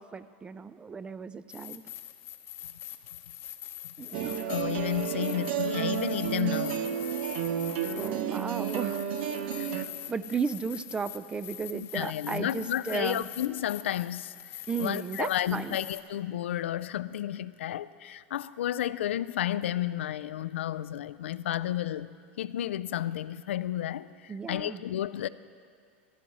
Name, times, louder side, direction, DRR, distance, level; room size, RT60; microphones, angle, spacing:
voice 1, 0.1-1.8 4.0-4.4 8.0-9.0 10.1-13.3 14.7-15.8 24.3-24.8, right 5 dB, 15° right, 0.4 m, -34 dB
sound 1, 1.5-16.0, left 12 dB, 40° left, 0.8 m, -44 dB
sound 2, 4.1-9.9, right 9 dB, 70° right, 0.7 m, -31 dB
voice 2, 4.5-6.9 9.6-9.9 11.7-14.3 14.8-25.3, left 12 dB, 90° left, 0.4 m, -32 dB
15.0 x 12.0 x 4.1 m
supercardioid pair, 125°, 6 cm